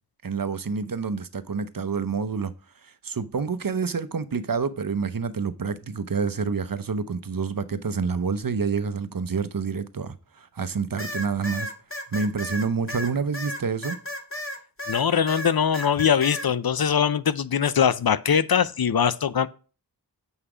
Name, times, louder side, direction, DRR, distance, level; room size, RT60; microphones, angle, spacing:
voice 1, 0.2-2.5 2.8-11.7 12.1-14.0, right 5 dB, 55° right, 0.8 m, -28 dB
sound 1, 11.0-15.0 15.3-16.5, left 1 dB, 35° left, 1.5 m, -33 dB
voice 2, 14.9-19.5, left 7 dB, 65° left, 0.6 m, -22 dB
8.0 x 5.6 x 4.9 m
wide cardioid pair, 40°, 40 cm